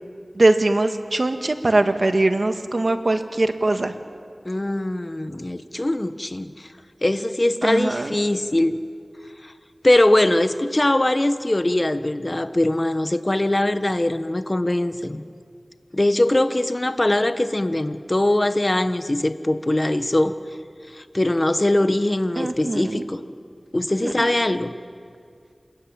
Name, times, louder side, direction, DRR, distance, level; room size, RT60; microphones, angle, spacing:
voice 1, 0.3-3.9 7.6-8.1 22.4-23.1 24.0-24.3, right 2 dB, 60° right, 7 dB, 1.7 m, -21 dB
voice 2, 4.4-6.7 7.0-8.8 9.4-9.5 9.8-15.2 15.9-20.4 20.9-23.2 23.7-24.7, left 1 dB, 35° left, 10 dB, 1.3 m, -21 dB
28.0 x 21.0 x 8.9 m, 2.2 s
wide cardioid pair, 45°, 0 cm